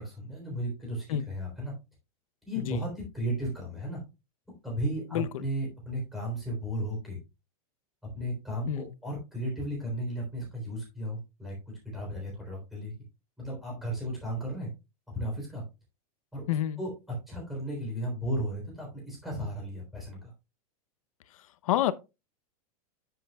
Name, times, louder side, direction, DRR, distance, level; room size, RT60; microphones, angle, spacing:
voice 1, 0.0-1.7 2.5-4.0 4.6-7.2 8.0-12.9 13.4-14.7 15.1-15.6 16.3-20.3, right 1 dB, ahead, 3.5 m, -35 dB
voice 2, 16.5-16.8 21.6-21.9, left 12 dB, 65° left, 0.7 m, -28 dB
9.7 x 7.6 x 2.3 m
supercardioid pair, 180°, 19 cm